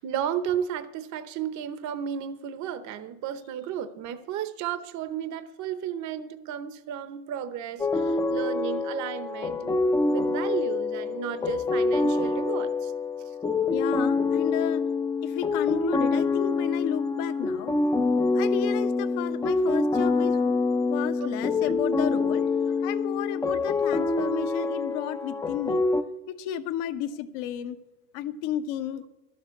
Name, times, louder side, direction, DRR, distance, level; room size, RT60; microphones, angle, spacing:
voice 1, 0.0-12.9 21.2-21.3 23.5-23.6, right 9 dB, 40° right, 12 dB, 0.8 m, -33 dB
sound 1, 7.8-26.0, left 3 dB, 10° left, 0.5 m, -26 dB
voice 2, 13.7-14.8 15.2-17.8 18.3-20.5 20.9-25.8 26.3-27.8 28.1-29.0, left 11 dB, 65° left, 10 dB, 1.1 m, -32 dB
12.0 x 7.3 x 8.4 m, 1.1 s
supercardioid pair, 130°, 43 cm